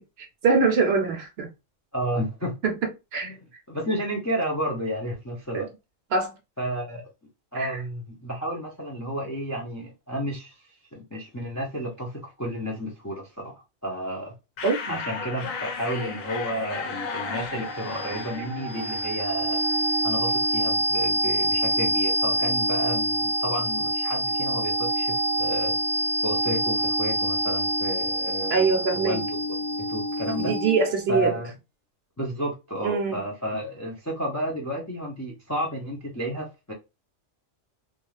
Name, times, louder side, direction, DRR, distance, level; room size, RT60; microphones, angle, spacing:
voice 1, 0.4-1.5 2.6-2.8 3.1-3.4 5.5-5.7 6.1-6.3 7.5-7.8 14.6-15.0 28.5-29.2 30.4-31.3 32.8-33.2, right 4 dB, 60° right, 0.7 m, -23 dB
voice 2, 1.9-2.6 3.2-3.4 3.7-5.7 6.6-7.1 7.5-10.6 10.9-14.3 14.9-19.6 20.0-25.7 26.2-29.2 29.9-30.5 31.1-31.5 32.2-36.7, equal, 25° left, 0.3 m, -31 dB
sound 1, 14.6-20.1, left 5 dB, 90° left, 1.1 m, -35 dB
sound 2, 17.1-31.0, right 1 dB, 85° right, 1.0 m, -26 dB
2.4 x 2.4 x 3.0 m
omnidirectional pair, 1.3 m